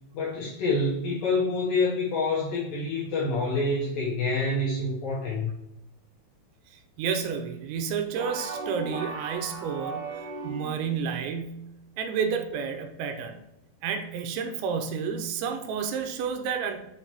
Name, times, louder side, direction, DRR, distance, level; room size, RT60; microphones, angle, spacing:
voice 1, 0.1-5.5, left 2 dB, 75° left, -6 dB, 2.1 m, -27 dB
voice 2, 7.0-13.4 13.8-16.8, right 6 dB, 90° right, 5 dB, 3.0 m, -31 dB
sound 1, 8.1-11.0, right 3 dB, 65° right, 2.2 m, -36 dB
7.9 x 4.4 x 2.9 m, 0.87 s
omnidirectional pair, 5.3 m